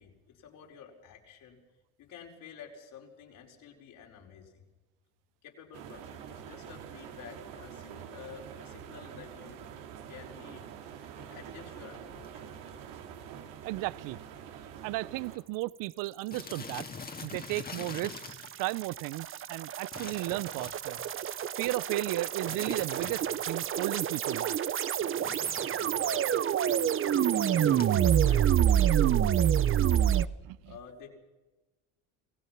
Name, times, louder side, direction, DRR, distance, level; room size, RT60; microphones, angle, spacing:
voice 1, 0.0-1.6 2.0-4.7 5.4-9.7 10.1-10.7 11.2-12.5 26.0-30.1 30.6-31.1, left 7 dB, 65° left, 5.1 m, -50 dB
sound 1, 5.7-15.4, right 8 dB, 85° right, 2.4 m, -46 dB
sound 2, 11.0-11.3 11.9-12.0 12.2-12.3 12.5-12.8 13.2-13.3 13.7-13.8 14.5-14.6 14.8-15.0 15.4-15.5 16.3-18.6 19.9-21.1 22.5-23.5 25.0-26.1 27.6-27.9, left 5 dB, 25° left, 2.2 m, -44 dB
voice 2, 13.6-14.2 14.8-16.9 17.2-21.0 21.6-24.6 30.4-30.6, right 19 dB, 70° right, 0.6 m, -34 dB
sound 3, 18.0-30.3, right 10 dB, 40° right, 0.8 m, -27 dB
27.5 x 16.5 x 6.0 m
supercardioid pair, 90°, 34 cm